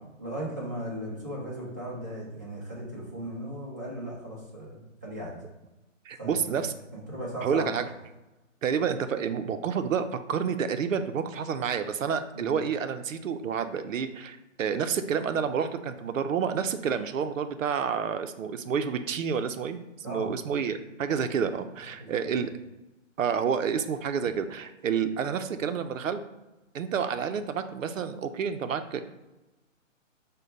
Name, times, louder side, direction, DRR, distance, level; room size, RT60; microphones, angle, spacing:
voice 1, 0.2-5.4 6.2-6.5 6.9-7.8 12.3-12.5 20.0-20.3 22.2-22.4, equal, 15° right, -8 dB, 0.5 m, -37 dB
voice 2, 6.1-6.7 7.4-7.9 8.6-19.8 20.1-22.5 23.2-26.2 26.7-29.0, right 7 dB, 75° right, 9 dB, 0.5 m, -29 dB
5.0 x 2.2 x 4.0 m, 1.0 s
hypercardioid pair, 160°, 39 cm